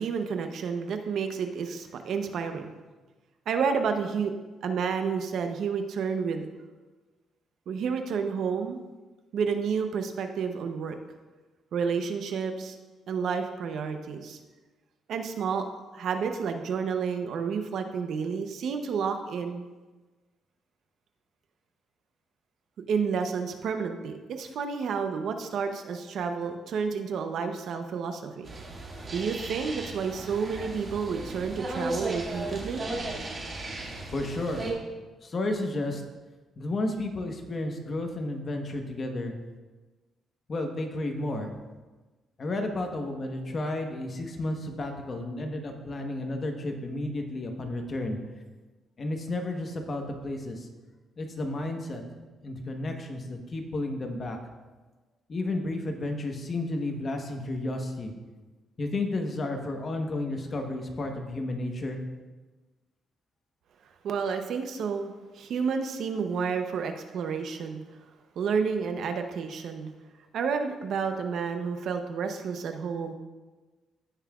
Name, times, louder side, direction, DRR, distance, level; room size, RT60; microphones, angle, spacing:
voice 1, 0.0-2.7 3.5-4.3 4.6-6.5 7.7-8.8 9.3-11.0 11.7-12.8 13.1-14.4 15.1-15.7 15.9-19.6 22.9-28.5 29.1-32.9 64.0-67.8 68.4-69.9 70.3-73.1, right 6 dB, 70° right, 6 dB, 0.8 m, -30 dB
sound 1, 28.4-34.7, right 2 dB, 35° right, 2.1 m, -36 dB
voice 2, 34.1-34.7 35.2-36.0 36.6-39.3 40.5-41.5 42.4-48.2 49.0-50.7 51.2-52.0 52.4-54.4 55.3-58.1 58.8-62.0, left 2 dB, 40° left, 4 dB, 1.2 m, -32 dB
15.5 x 5.7 x 2.4 m, 1.2 s
cardioid pair, 90°, 0 cm